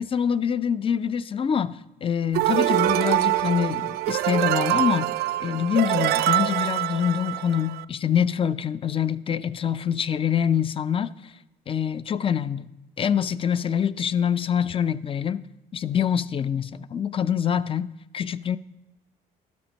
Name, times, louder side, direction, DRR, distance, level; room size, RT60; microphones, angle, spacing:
voice 1, 0.0-5.1 5.4-11.1 11.7-12.7 13.0-15.5 15.7-18.6, left 8 dB, 30° left, 0.5 m, -25 dB
sound 1, 2.3-7.8, right 15 dB, 70° right, 0.4 m, -24 dB
12.0 x 4.4 x 6.2 m
cardioid pair, 110°, 17 cm